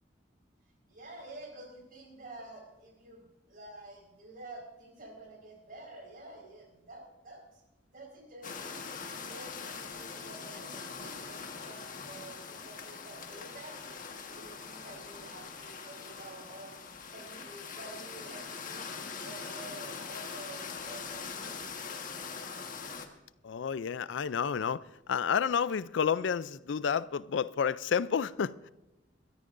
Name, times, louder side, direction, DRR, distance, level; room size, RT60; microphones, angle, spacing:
voice 1, 0.9-7.6 7.9-8.7 9.1-16.7 17.1-18.9 19.2-21.7, right 2 dB, 50° right, 4.7 m, -49 dB
sound 1, 8.4-23.1, left 5 dB, 45° left, 1.4 m, -42 dB
voice 2, 23.4-24.8 25.1-28.7, left 7 dB, 75° left, 0.4 m, -30 dB
22.0 x 13.5 x 2.6 m
head